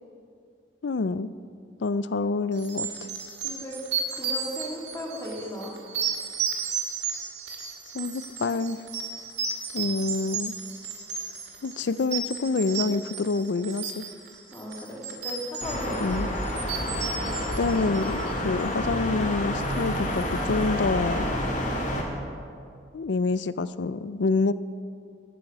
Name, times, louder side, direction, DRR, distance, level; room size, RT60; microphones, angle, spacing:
voice 1, 0.8-1.3 1.8-2.9 7.9-8.8 9.7-10.5 11.6-14.0 16.0-16.3 17.6-21.3 22.9-24.5, left 3 dB, 75° left, 15 dB, 0.5 m, -27 dB
sound 1, 2.6-18.4, right 6 dB, 65° right, 2.0 m, -33 dB
voice 2, 3.4-3.8 4.1-5.7 14.5-16.2, equal, 15° left, -2 dB, 2.4 m, -36 dB
sound 2, 15.6-22.0, left 1 dB, 45° left, 2.0 m, -29 dB
14.5 x 9.0 x 6.2 m, 2.3 s
head